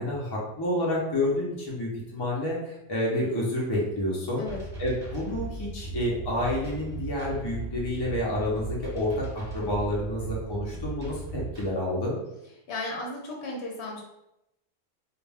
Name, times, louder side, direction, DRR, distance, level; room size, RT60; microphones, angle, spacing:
voice 1, 0.0-4.5 4.8-12.2, left 1 dB, 30° left, -4 dB, 0.5 m, -29 dB
sound 1, 4.4-11.6, right 3 dB, 40° right, 1.0 m, -37 dB
voice 2, 12.7-14.0, left 2 dB, 70° left, -1 dB, 0.9 m, -35 dB
2.4 x 2.2 x 3.3 m, 0.87 s
omnidirectional pair, 1.2 m